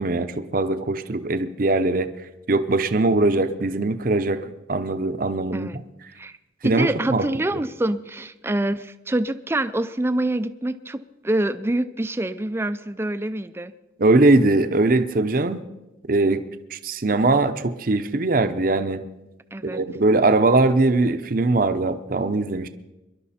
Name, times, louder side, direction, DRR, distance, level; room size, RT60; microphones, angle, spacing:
voice 1, 0.0-2.1 2.5-5.7 6.6-7.3 14.0-15.6 16.1-16.4 16.7-19.0 19.6-22.7, right 2 dB, 50° right, 10 dB, 0.7 m, -21 dB
voice 2, 6.6-13.7 19.5-19.8, right 1 dB, 15° right, 11 dB, 0.4 m, -26 dB
23.5 x 11.5 x 4.2 m, 1.0 s
head